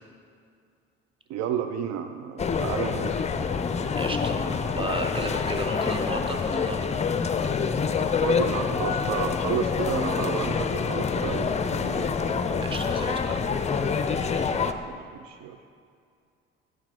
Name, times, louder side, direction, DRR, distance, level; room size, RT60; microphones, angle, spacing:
voice 1, 1.3-3.2 8.2-12.1 14.8-15.6, right 8 dB, 65° right, 7 dB, 0.5 m, -31 dB
sound 1, 2.4-14.7, left 5 dB, 25° left, 0.5 m, -26 dB
voice 2, 4.0-6.9 12.6-13.4, right 2 dB, 15° right, 5 dB, 0.9 m, -34 dB
8.7 x 5.3 x 4.4 m, 2.3 s
hypercardioid pair, 55°, 30 cm